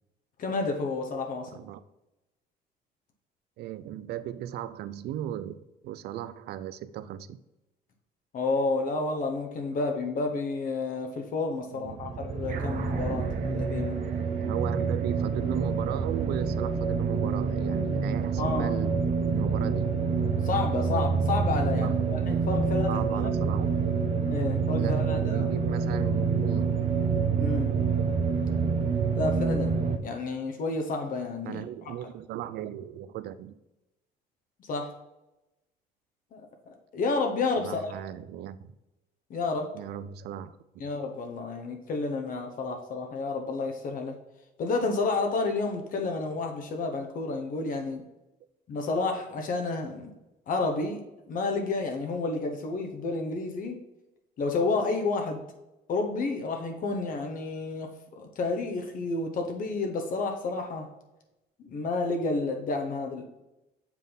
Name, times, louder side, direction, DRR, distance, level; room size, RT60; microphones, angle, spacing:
voice 1, 0.4-1.5 8.3-14.0 18.4-18.7 20.4-23.3 24.3-25.5 27.4-27.7 29.1-31.6 34.6-34.9 36.3-37.9 39.3-39.7 40.8-44.2 44.6-48.0 48.7-50.1 50.5-51.0 51.3-53.8 54.4-55.4 55.9-60.9 61.6-63.2, left 3 dB, 55° left, 4 dB, 1.1 m, -30 dB
voice 2, 1.5-1.8 3.6-7.4 11.7-12.0 14.3-19.9 21.7-22.1 22.9-24.2 24.8-26.8 31.4-33.6 37.6-38.7 39.7-40.6, right 11 dB, 75° right, 15 dB, 0.5 m, -37 dB
sound 1, 11.8-30.0, right 5 dB, 40° right, 0.8 m, -27 dB
sound 2, 12.5-17.2, right 4 dB, 55° right, 1.0 m, -40 dB
7.3 x 3.7 x 3.9 m, 0.96 s
cardioid pair, 110°, 17 cm